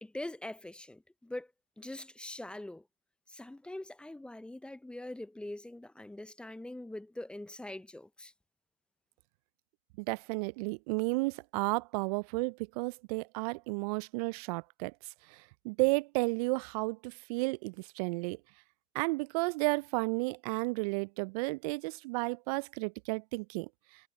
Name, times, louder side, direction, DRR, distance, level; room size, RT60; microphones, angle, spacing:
voice 1, 0.0-1.5 1.8-2.8 3.3-8.3, left 1 dB, 5° left, 0.7 m, -43 dB
voice 2, 10.0-14.9 15.3-18.4 18.9-23.7, right 26 dB, 35° right, 0.6 m, -33 dB
hypercardioid pair, 110°, 32 cm